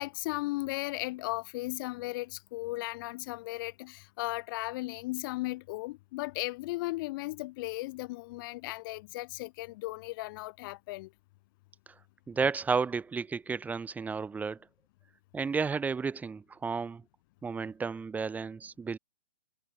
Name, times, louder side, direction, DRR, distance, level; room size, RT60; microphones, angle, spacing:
voice 1, 0.0-11.1, left 20 dB, 35° left, 2.7 m, -36 dB
voice 2, 12.3-14.6 15.3-17.0 17.4-19.0, right 5 dB, 10° right, 3.7 m, -32 dB
hypercardioid pair, 150°, 18 cm